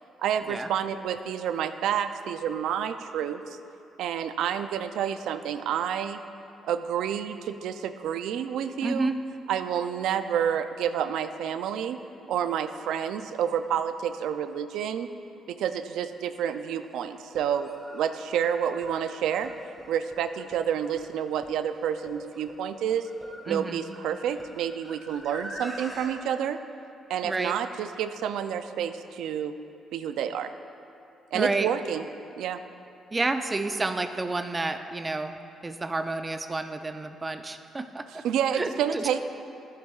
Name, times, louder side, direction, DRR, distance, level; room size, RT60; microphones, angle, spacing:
voice 1, 0.2-3.6 4.0-6.2 6.6-9.1 9.5-12.0 12.3-15.1 15.5-19.5 19.9-23.1 23.5-26.6 27.1-29.5 29.9-30.5 31.3-32.0 32.4-32.6 38.2-39.2, right 9 dB, 85° right, 10 dB, 0.4 m, -29 dB
voice 2, 8.8-9.2 23.5-23.8 27.2-27.6 31.3-31.7 33.1-35.4 35.6-38.2 38.5-39.2, right 3 dB, 25° right, 8 dB, 0.5 m, -30 dB
sound 1, 16.1-16.2 17.2-26.1, equal, ahead, 2.1 m, -45 dB
14.0 x 8.3 x 2.4 m, 2.8 s
cardioid pair, 90°, 0 cm